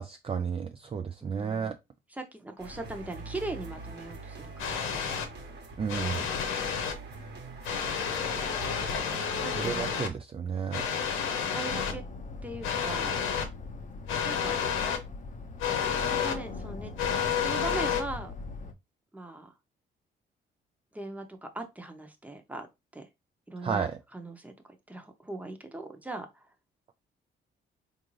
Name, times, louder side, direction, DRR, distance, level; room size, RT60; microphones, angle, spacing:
voice 1, 0.0-1.7 5.8-6.3 9.5-10.8 23.6-24.0, right 6 dB, 30° right, 0.4 m, -32 dB
voice 2, 1.2-1.7 2.1-5.0 8.1-8.5 9.4-10.0 11.1-12.0 12.4-13.2 14.2-14.6 16.0-16.9 17.4-18.3 19.1-19.5 20.9-22.7 22.9-23.1 23.5-24.5 24.9-26.5, right 2 dB, 5° right, 0.8 m, -40 dB
sound 1, 2.6-10.0, right 2 dB, 60° right, 1.1 m, -44 dB
sound 2, 4.6-5.3 5.9-6.9 7.6-10.1 10.7-11.9 12.6-13.4 14.1-15.0 15.6-16.3 17.0-18.0, left 7 dB, 90° left, 0.8 m, -30 dB
sound 3, 11.7-18.7, left 3 dB, 40° left, 0.8 m, -41 dB
3.7 x 2.6 x 3.1 m
cardioid pair, 90°, 20 cm